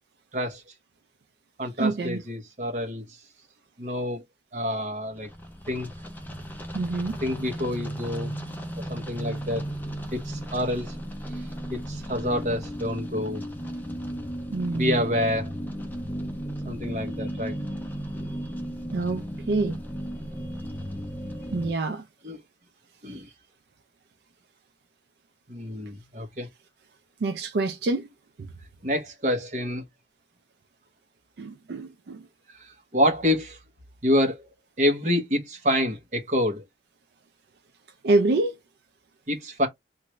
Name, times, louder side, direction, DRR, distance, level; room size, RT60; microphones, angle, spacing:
voice 1, 0.3-0.6 1.6-3.2 3.8-4.2 4.5-5.3 5.7-5.9 7.2-8.3 8.8-9.6 10.1-11.0 11.3-11.4 11.7-13.4 14.7-15.5 16.6-17.6 22.2-22.4 23.0-23.3 25.5-26.5 28.8-29.8 32.5-33.6 34.0-36.6 39.3-39.7, left 1 dB, 45° right, 1.0 m, -27 dB
voice 2, 1.8-2.2 6.7-7.2 14.5-15.0 18.9-19.8 21.5-22.0 27.2-28.1 31.4-32.3 38.0-38.6, right 2 dB, 65° right, 0.4 m, -26 dB
sound 1, 5.1-21.7, equal, 10° left, 0.5 m, -35 dB
3.1 x 2.5 x 3.0 m
head